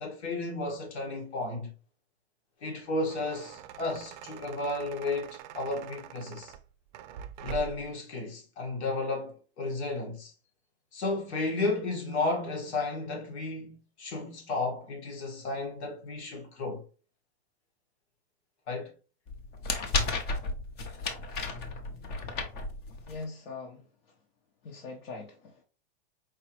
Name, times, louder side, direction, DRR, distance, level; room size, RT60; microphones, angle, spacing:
voice 1, 0.0-1.7 2.6-6.5 7.4-10.3 10.9-16.8 18.7-18.9, left 2 dB, 85° left, 1.8 m, -33 dB
sound 1, 2.7-7.9, right 10 dB, 45° right, 0.5 m, -44 dB
sound 2, 19.3-23.2, left 3 dB, 30° left, 0.7 m, -33 dB
voice 2, 23.0-24.2 24.6-25.6, left 3 dB, 65° left, 1.1 m, -42 dB
4.6 x 2.9 x 3.0 m
supercardioid pair, 145°, 32 cm